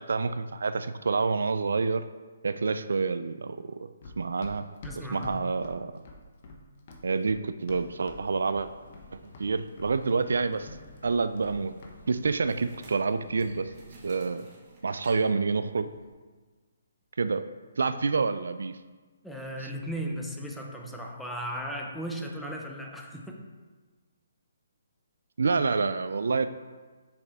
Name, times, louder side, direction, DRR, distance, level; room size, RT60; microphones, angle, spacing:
voice 1, 0.0-2.1 2.4-3.9 4.2-4.7 5.0-5.9 7.0-8.7 9.1-10.7 11.0-11.7 12.1-13.7 14.0-14.5 14.8-15.9 17.2-17.5 17.8-18.8 25.4-26.5, right 4 dB, 75° right, 11 dB, 0.3 m, -28 dB
Run, 4.0-8.2 8.5-9.1 9.3-12.0 12.2-12.4, left 3 dB, 45° left, 0.9 m, -46 dB
voice 2, 4.8-5.4 19.2-23.5, equal, ahead, 0 dB, 0.6 m, -36 dB
sound 1, 7.7-13.8, left 2 dB, 85° left, 1.5 m, -53 dB
sound 2, 10.3-10.5 12.4-16.1, right 2 dB, 20° right, 1.3 m, -52 dB
6.9 x 4.9 x 3.4 m, 1.4 s
hypercardioid pair, 155°, 0 cm